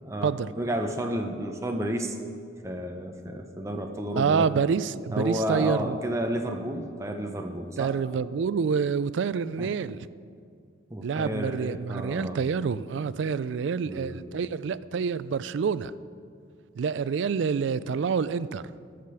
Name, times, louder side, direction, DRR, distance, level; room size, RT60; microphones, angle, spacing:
voice 1, 0.0-2.2 2.6-4.5 5.1-7.9 9.6-9.7 10.9-12.4 13.9-14.2, equal, 15° right, 0.6 m, -31 dB
voice 2, 4.1-6.0 7.8-10.1 11.0-15.9 16.8-18.6, right 6 dB, 70° right, 0.3 m, -27 dB
13.5 x 5.0 x 6.9 m
head